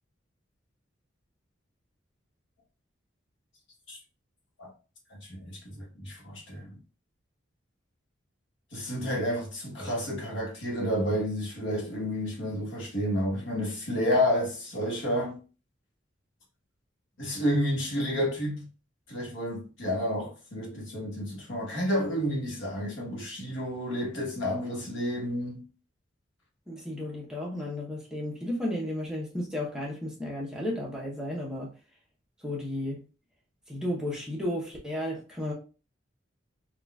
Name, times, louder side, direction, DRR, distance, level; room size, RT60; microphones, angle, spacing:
voice 1, 5.1-6.8 8.7-15.4 17.2-18.7 19.1-25.6, equal, 80° left, 1.1 m, -30 dB
voice 2, 26.7-31.7 32.4-33.0 33.7-35.5, left 1 dB, 5° right, 0.8 m, -33 dB
3.8 x 2.3 x 2.3 m
head